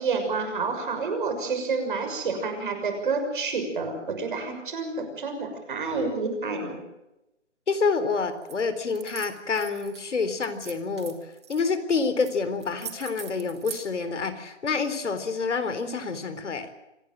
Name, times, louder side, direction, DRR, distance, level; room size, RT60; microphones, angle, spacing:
voice 1, 0.0-6.8, right 4 dB, 45° right, 5 dB, 6.3 m, -29 dB
voice 2, 7.7-11.2 11.5-16.7, left 4 dB, 75° left, 10 dB, 4.0 m, -27 dB
sound 1, 8.4-8.6 8.9-10.0 10.4-11.6 12.2-12.3 12.6-13.8, right 8 dB, 25° right, 1.6 m, -41 dB
26.0 x 18.5 x 7.6 m, 0.94 s
hypercardioid pair, 175°, 36 cm